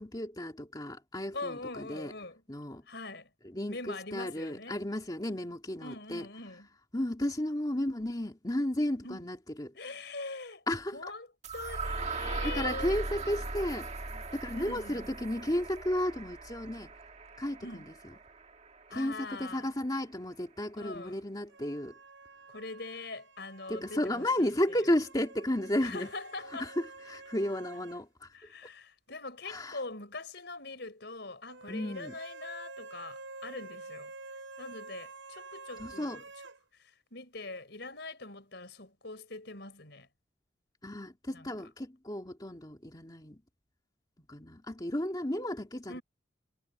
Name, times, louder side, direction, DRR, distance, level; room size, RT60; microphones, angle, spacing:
voice 1, 0.0-2.1 2.5-2.8 3.4-6.2 6.9-9.7 10.7-11.1 12.4-13.9 14.3-16.9 17.4-17.7 18.9-21.9 23.7-26.1 26.6-28.4 29.5-29.8 31.7-32.1 35.8-36.2 40.8-43.4 44.3-46.0, left 1 dB, 20° left, 2.4 m, -33 dB
voice 2, 1.3-2.4 2.9-3.3 3.7-4.8 5.8-6.7 9.0-9.2 9.7-10.6 10.9-11.3 11.5-13.0 14.1-14.3 14.5-15.1 17.6-17.9 18.9-19.7 20.8-21.2 22.5-24.8 25.8-26.7 28.3-34.1 34.6-36.2 36.7-40.1 41.3-41.5 45.9-46.0, left 3 dB, 60° left, 5.9 m, -43 dB
sound 1, 11.4-19.4, right 3 dB, 35° right, 1.6 m, -39 dB
sound 2, 21.5-28.0 28.3-28.4 31.5-36.6, right 3 dB, 90° right, 6.8 m, -49 dB
head